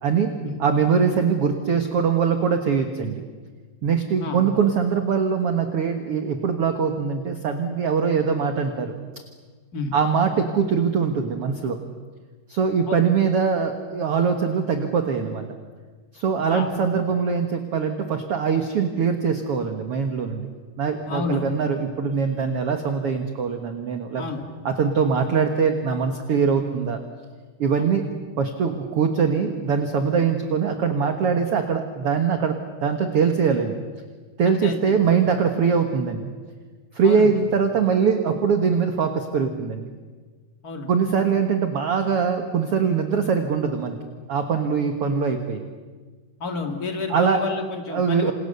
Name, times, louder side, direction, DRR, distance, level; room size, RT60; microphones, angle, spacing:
voice 1, 0.6-3.1 3.8-8.9 9.9-11.8 12.5-15.4 16.1-20.5 20.8-24.2 24.7-27.0 27.6-28.0 28.4-33.7 34.4-36.2 36.9-39.9 40.9-44.0 44.3-45.6 47.1-47.4 47.9-48.3, right 6 dB, 55° right, 5 dB, 1.8 m, -22 dB
voice 2, 4.2-4.6 9.7-9.9 12.9-13.0 16.5-16.7 21.1-21.5 24.2-24.4 27.7-27.9 34.4-35.1 37.0-37.3 40.6-40.9 46.4-48.3, left 4 dB, 30° left, 3 dB, 2.3 m, -30 dB
28.5 x 28.0 x 6.9 m, 1.4 s
omnidirectional pair, 4.4 m